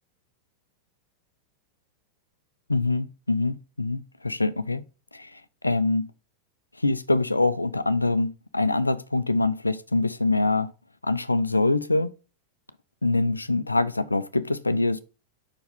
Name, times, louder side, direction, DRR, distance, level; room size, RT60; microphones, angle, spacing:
voice 1, 2.7-4.8 5.1-6.1 6.8-10.7 11.0-12.1 13.0-15.0, left 2 dB, 80° left, 0.4 m, -24 dB
5.3 x 4.6 x 5.1 m
figure-of-eight pair, 90°, 0 cm